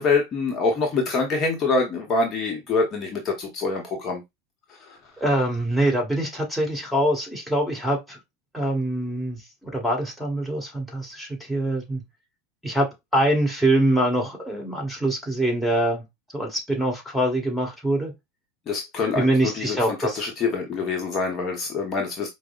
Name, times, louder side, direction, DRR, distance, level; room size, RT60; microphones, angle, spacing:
voice 1, 0.0-4.2 4.9-5.0 18.7-22.3, left 4 dB, 35° left, 0.9 m, -25 dB
voice 2, 5.2-8.2 8.5-12.0 12.6-16.0 16.3-18.1 19.1-20.2, right 1 dB, ahead, 1.6 m, -24 dB
4.8 x 2.0 x 2.4 m
hypercardioid pair, 85°, 0 cm